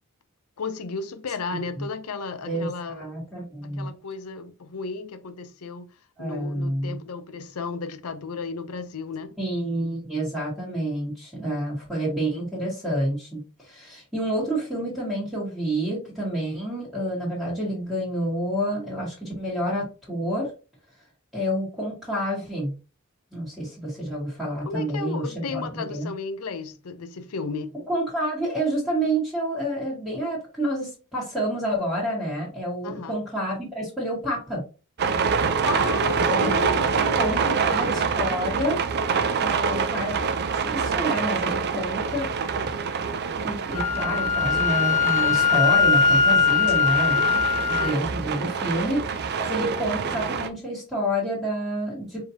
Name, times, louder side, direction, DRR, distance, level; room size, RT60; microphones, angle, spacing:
voice 1, 0.6-3.0 3.6-5.9 6.2-9.3 24.6-27.7 32.8-33.2 35.5-37.7 47.7-48.0, left 4 dB, 90° left, 0.6 m, -34 dB
voice 2, 1.5-1.8 2.5-3.9 6.2-7.0 9.4-20.5 21.3-22.7 23.3-26.1 27.9-34.6 36.3-36.8 37.2-38.8 39.4-40.3 40.5-42.3 43.4-47.4 47.6-49.2 49.5-52.2, right 1 dB, 5° right, 1.4 m, -28 dB
sound 1, 35.0-50.5, right 5 dB, 50° right, 0.4 m, -26 dB
Wind instrument woodwind instrument, 43.8-47.9, left 6 dB, 35° left, 0.5 m, -21 dB
4.9 x 2.8 x 2.7 m
head